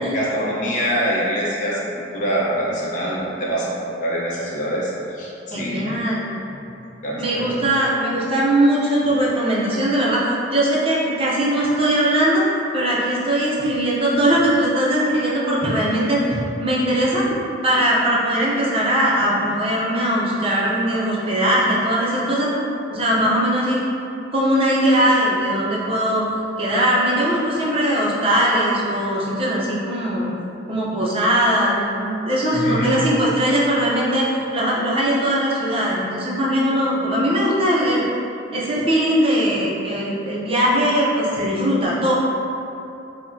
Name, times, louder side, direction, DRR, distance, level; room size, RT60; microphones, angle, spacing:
voice 1, 0.1-5.9 6.5-6.7 7.0-7.6 32.5-32.9, equal, 45° left, -6 dB, 0.7 m, -24 dB
voice 2, 5.5-6.2 7.2-10.3 10.5-12.5 12.7-16.2 16.6-17.3 17.6-22.5 22.9-23.8 24.3-26.2 26.6-30.3 30.7-38.1 38.5-42.1, right 1 dB, 35° right, -6 dB, 0.6 m, -20 dB
5.2 x 2.1 x 2.6 m, 2.8 s
head